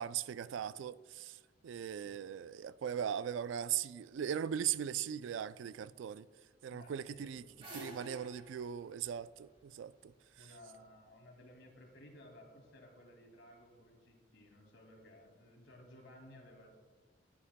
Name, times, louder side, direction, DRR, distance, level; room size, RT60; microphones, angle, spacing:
voice 1, 0.0-1.4 1.6-6.3 6.6-7.4 7.7-10.1, right 9 dB, 75° right, 0.3 m, -39 dB
voice 2, 6.7-8.2 10.4-16.8, left 1 dB, 75° left, 2.3 m, -58 dB
sound 1, 7.1-10.3, right 1 dB, 30° right, 1.6 m, -52 dB
14.5 x 9.9 x 2.2 m
head